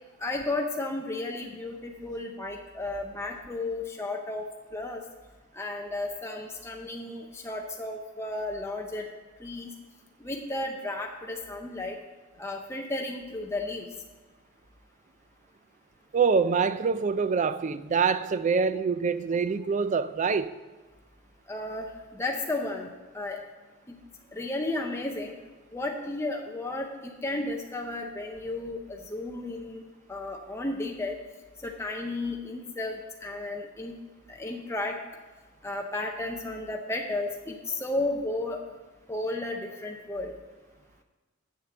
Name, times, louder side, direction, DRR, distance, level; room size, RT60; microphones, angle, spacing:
voice 1, 0.2-4.5 4.7-5.0 5.5-9.1 9.4-9.7 10.2-12.0 12.4-13.9 21.5-23.4 23.9-24.0 24.3-25.4 25.7-29.8 30.1-31.2 31.6-34.0 34.3-35.0 35.6-38.6 39.1-40.3, left 2 dB, 15° left, 0.6 m, -33 dB
voice 2, 16.1-20.5, right 5 dB, 35° right, 0.3 m, -25 dB
7.4 x 7.3 x 6.9 m
head